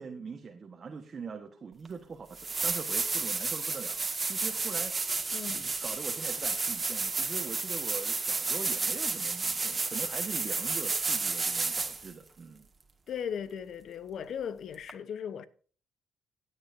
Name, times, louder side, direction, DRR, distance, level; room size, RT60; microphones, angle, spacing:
voice 1, 0.0-5.1 5.5-12.7, right 5 dB, 45° right, 1.3 m, -42 dB
sound 1, 1.8-1.9 2.3-12.1 14.9-15.0, right 4 dB, 30° right, 1.9 m, -31 dB
voice 2, 5.3-5.7 13.1-15.5, left 8 dB, 65° left, 0.9 m, -37 dB
17.0 x 8.8 x 2.7 m
cardioid pair, 90°, 0 cm